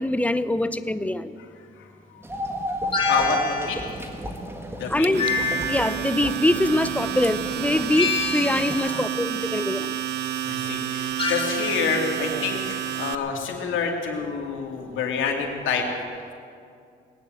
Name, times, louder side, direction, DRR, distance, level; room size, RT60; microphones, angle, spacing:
voice 1, 0.0-1.4 4.9-9.9, left 1 dB, 5° left, 12 dB, 0.6 m, -24 dB
sound 1, 2.2-8.8, equal, 10° right, 1.7 m, -32 dB
sound 2, 2.9-3.9 5.2-6.1 8.0-8.9 11.2-11.7, left 4 dB, 25° left, 3.5 m, -27 dB
voice 2, 3.1-3.8 4.8-5.1 8.8-9.1 10.4-15.8, left 6 dB, 80° left, 1 dB, 2.5 m, -27 dB
Domestic sounds home sounds, 5.0-13.2, right 11 dB, 60° right, 0.7 m, -30 dB
19.5 x 9.3 x 7.6 m, 2.4 s
cardioid pair, 90°, 20 cm